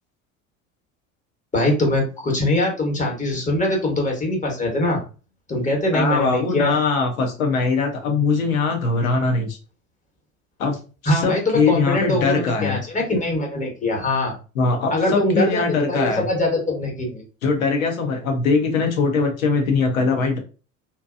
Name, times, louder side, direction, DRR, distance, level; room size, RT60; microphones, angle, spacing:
voice 1, 1.5-5.0 5.5-6.7 11.0-14.3 14.9-17.2, left 1 dB, 20° left, -1 dB, 1.2 m, -22 dB
voice 2, 5.9-9.6 10.6-12.8 14.6-16.2 17.4-20.4, left 4 dB, 85° left, 3 dB, 0.8 m, -21 dB
2.7 x 2.2 x 2.4 m, 0.34 s
hypercardioid pair, 70°, 40 cm